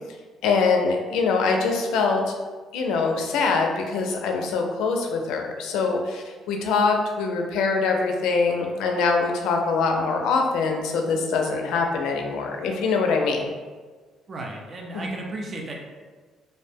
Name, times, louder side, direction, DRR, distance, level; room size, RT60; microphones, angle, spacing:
voice 1, 0.4-2.3 2.7-13.5 14.9-15.1, left 4 dB, 85° left, 2 dB, 0.4 m, -23 dB
voice 2, 14.3-15.7, right 2 dB, 40° right, 0 dB, 0.4 m, -34 dB
2.5 x 2.1 x 3.3 m, 1.4 s
cardioid pair, 95°, 0 cm